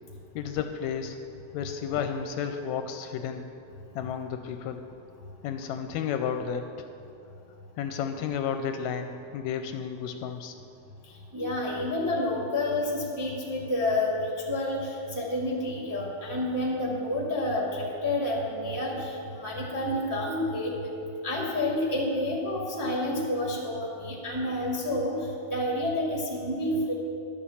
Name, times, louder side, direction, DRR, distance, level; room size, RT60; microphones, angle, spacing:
voice 1, 0.4-1.2 1.5-3.5 4.0-4.8 5.4-6.9 7.8-10.6, left 7 dB, 80° left, 7 dB, 1.8 m, -32 dB
voice 2, 11.3-20.8 21.2-25.2 25.4-26.9, left 1 dB, 10° right, -3 dB, 1.0 m, -29 dB
11.5 x 7.1 x 7.1 m, 2.6 s
omnidirectional pair, 3.4 m